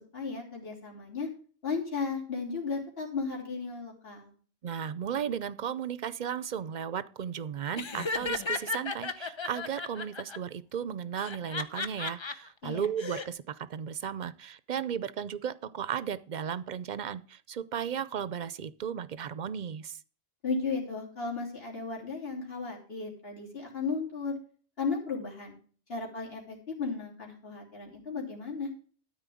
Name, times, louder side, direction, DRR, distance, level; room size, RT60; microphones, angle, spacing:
voice 1, 0.1-1.3 1.6-4.3 12.6-12.9 20.4-24.4 24.8-25.5 25.9-28.7, left 4 dB, 60° left, -3 dB, 3.3 m, -35 dB
voice 2, 4.6-20.0, right 8 dB, 50° right, 16 dB, 0.6 m, -35 dB
Laughter, 7.8-10.4 11.2-12.3 12.8-13.3, left 4 dB, 30° left, 0.7 m, -34 dB
13.0 x 4.4 x 8.3 m, 0.42 s
omnidirectional pair, 1.1 m